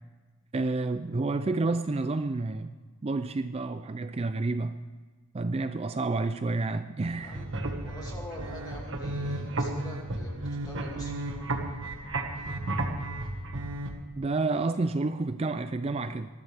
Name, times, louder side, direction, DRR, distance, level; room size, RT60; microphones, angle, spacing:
voice 1, 0.5-2.7 3.0-4.8 5.3-7.4 14.1-16.3, right 3 dB, 30° right, 10 dB, 0.4 m, -29 dB
sound 1, 7.2-13.9, right 2 dB, 60° right, 1.8 m, -33 dB
voice 2, 7.8-11.5, left 1 dB, 20° left, -2 dB, 2.6 m, -45 dB
20.0 x 13.0 x 3.5 m, 1.4 s
head